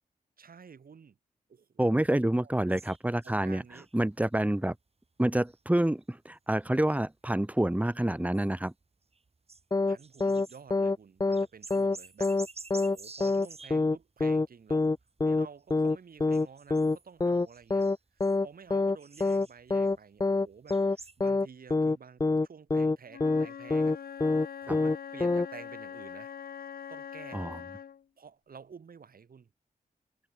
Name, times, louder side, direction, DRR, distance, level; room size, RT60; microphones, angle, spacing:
voice 1, 0.4-1.2 1.5-2.0 2.4-2.8 3.2-3.9 9.9-12.3 12.9-14.9 15.2-24.3 24.6-26.3 26.9-27.7 28.2-29.5, right 6 dB, 75° right, 6.3 m, -51 dB
voice 2, 1.8-3.6 3.9-4.7 5.2-8.7 27.3-27.6, right 1 dB, 10° right, 2.7 m, -27 dB
sound 1, 2.7-4.5 5.2-6.4 6.6-6.9 7.4-7.6 8.0-8.8 9.1-10.9 11.2-14.0 14.8-15.4 15.7-15.9 16.3-17.0 17.3-20.0 20.3-21.3, right 3 dB, 45° right, 4.5 m, -50 dB
sound 2, 9.7-10.0 10.2-10.5 10.7-11.0 11.2-11.5 11.7-12.0 12.2-12.5 12.7-13.0 13.2-13.5 13.7-14.0 14.2-14.5 14.7-15.0 15.2-15.5 15.7-16.0 16.2-16.5 16.7-17.0 17.2-17.5 17.7-18.0 18.2-18.5 18.7-19.0 19.2-19.5 19.7-20.0 20.2-20.5 20.7-21.0 21.2-21.5 21.7-22.0 22.2-22.5 22.7-23.0 23.2-23.5 23.7-24.0 24.2-24.5 24.7-25.0 25.2-25.5, left 3 dB, 25° left, 0.6 m, -26 dB
Wind instrument woodwind instrument, 23.1-28.0, left 8 dB, 90° left, 1.2 m, -43 dB
wide cardioid pair, 75°, 15 cm